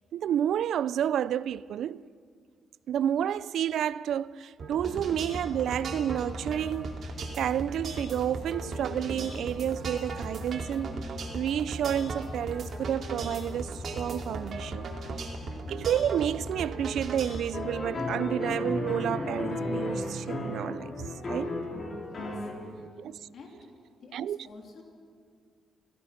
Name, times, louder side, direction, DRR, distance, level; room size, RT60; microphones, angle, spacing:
voice 1, 0.1-2.0 2.9-7.1 7.4-11.0 11.3-14.9 15.7-20.9 21.3-21.5 23.0-23.2 24.1-24.4, right 10 dB, 80° right, 0.4 m, -30 dB
sound 1, 4.6-17.4, right 2 dB, 55° right, 3.0 m, -36 dB
sound 2, 17.5-22.5, left 2 dB, 40° left, 4.3 m, -33 dB
voice 2, 22.0-22.5 23.3-23.6 24.0-24.8, left 3 dB, 60° left, 3.1 m, -50 dB
29.5 x 16.0 x 5.8 m
cardioid pair, 115°, 0 cm